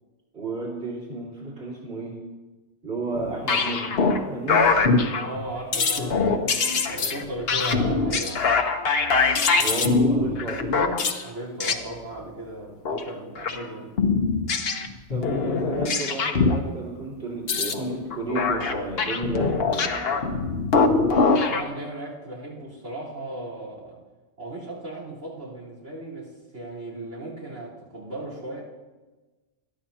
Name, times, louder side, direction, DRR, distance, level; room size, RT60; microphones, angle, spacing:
voice 1, 0.3-2.2 2.8-4.7 6.1-6.3 9.6-11.0 15.1-20.3, right 3 dB, 60° right, -7 dB, 4.0 m, -32 dB
sound 1, 3.1-4.2 4.5-5.5 5.7-11.2 11.6-11.8 12.8-13.0 13.4-13.6 14.0-16.6 17.4-21.6, left 4 dB, 60° left, 1.1 m, -23 dB
voice 2, 5.1-8.6 11.2-13.9 21.3-24.0 24.4-28.6, right 1 dB, 85° right, -5 dB, 4.2 m, -36 dB
21.0 x 12.5 x 2.9 m, 1.2 s
omnidirectional pair, 1.2 m